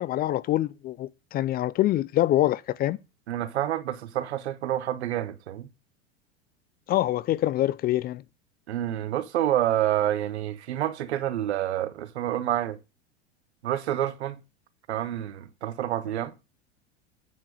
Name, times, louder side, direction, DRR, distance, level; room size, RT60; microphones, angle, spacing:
voice 1, 0.0-3.0 6.9-8.2, left 14 dB, 30° left, 0.4 m, -25 dB
voice 2, 3.3-5.7 8.7-12.8 13.6-14.4 14.9-16.3, right 12 dB, 75° right, 1.1 m, -28 dB
9.3 x 6.0 x 4.8 m
hypercardioid pair, 90°, 33 cm